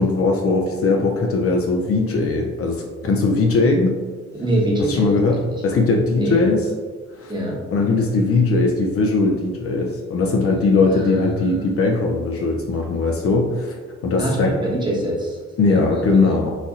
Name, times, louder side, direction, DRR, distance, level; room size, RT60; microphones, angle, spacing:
voice 1, 0.0-4.0 4.8-6.7 7.1-7.3 7.7-13.8 14.0-14.6 15.6-16.5, left 3 dB, 50° left, 1 dB, 0.5 m, -19 dB
voice 2, 4.3-5.1 6.2-6.5 7.3-7.6 10.9-11.8 14.2-15.4 15.7-16.4, right 1 dB, 15° right, -4 dB, 1.0 m, -24 dB
4.0 x 2.7 x 2.4 m, 1.5 s
cardioid pair, 90°, 30 cm